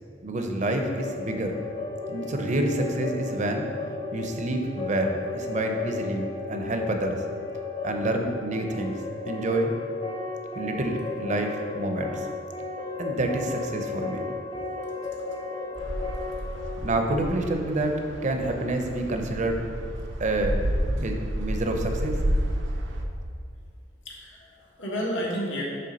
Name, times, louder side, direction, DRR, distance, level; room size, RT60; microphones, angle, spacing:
voice 1, 0.2-1.6 2.1-3.7 4.1-7.2 7.8-9.0 9.3-9.7 10.6-12.3 13.0-14.2 16.8-18.0 18.2-19.6 20.2-20.6 20.9-22.2, right 1 dB, 40° right, 4 dB, 0.6 m, -28 dB
sound 1, 0.5-18.3, left 3 dB, 25° left, 0.4 m, -35 dB
sound 2, 15.7-23.0, equal, 80° right, 0.6 m, -30 dB
voice 2, 24.0-25.6, equal, 80° left, -3 dB, 1.4 m, -31 dB
6.8 x 3.4 x 5.1 m, 2.2 s
head